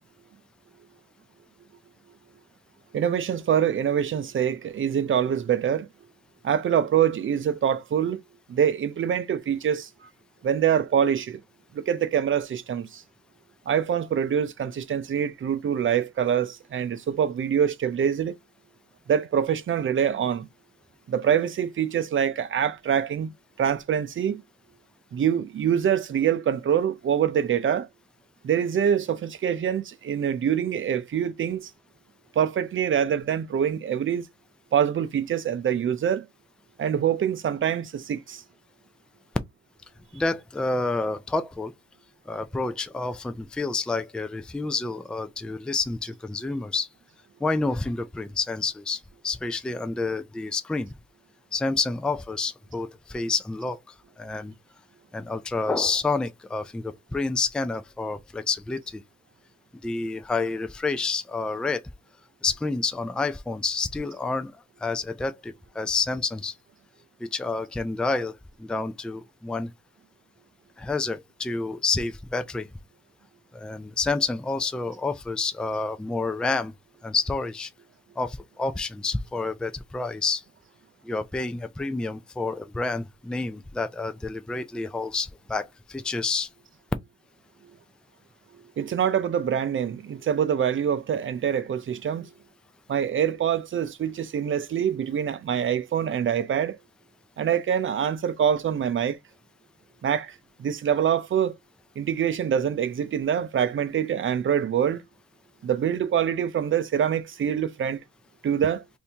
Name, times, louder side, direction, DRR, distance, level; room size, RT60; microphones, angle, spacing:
voice 1, 2.9-5.9 6.4-8.2 8.5-10.1 10.4-11.4 11.7-13.0 13.7-18.3 19.1-20.5 21.1-23.3 23.6-24.4 25.1-27.9 28.4-31.7 32.4-34.3 34.7-36.3 36.8-38.4 88.8-92.3 92.9-96.8 97.4-99.2 100.0-101.5 102.0-105.0 105.6-108.0 108.4-108.8, right 8 dB, 40° right, 0.6 m, -25 dB
voice 2, 40.1-41.7 42.3-46.9 47.4-50.9 51.5-53.8 54.2-54.5 55.1-59.0 59.8-61.8 62.4-64.5 64.8-66.5 67.3-69.7 70.8-72.7 73.5-76.7 77.0-77.7 78.2-80.4 81.0-86.5, left 3 dB, 5° left, 0.4 m, -29 dB
2.7 x 2.7 x 3.4 m
cardioid pair, 90°, 30 cm